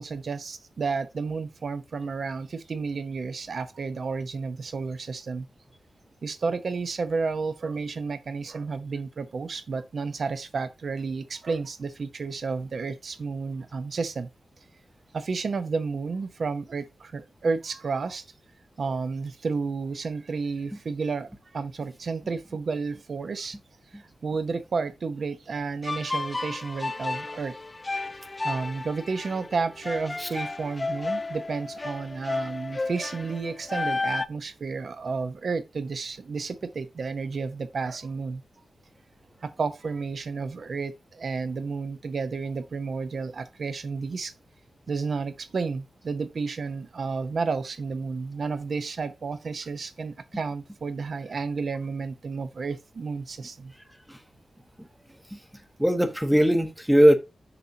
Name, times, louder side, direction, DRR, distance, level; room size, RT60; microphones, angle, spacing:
voice 1, 0.0-5.5 6.2-14.3 15.1-18.2 18.8-23.6 23.9-27.6 28.4-38.4 39.4-44.3 44.9-53.7, right 4 dB, 50° right, 0.8 m, -31 dB
sound 1, 25.8-34.3, left 3 dB, 20° left, 0.3 m, -32 dB
voice 2, 55.8-57.2, equal, 5° right, 0.8 m, -20 dB
6.7 x 5.7 x 2.7 m
wide cardioid pair, 170°, 0 cm